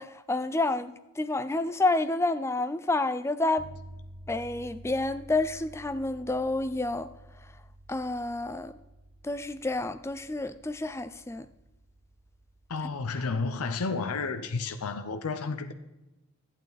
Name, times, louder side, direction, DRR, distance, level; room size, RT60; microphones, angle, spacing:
voice 1, 0.0-3.7 4.3-7.1 7.9-8.8 9.2-11.5, left 2 dB, 10° left, 0.3 m, -29 dB
sound 1, 3.6-13.7, right 1 dB, 50° right, 0.9 m, -51 dB
voice 2, 12.7-15.7, left 4 dB, 80° left, 0.7 m, -31 dB
12.0 x 8.8 x 4.0 m
head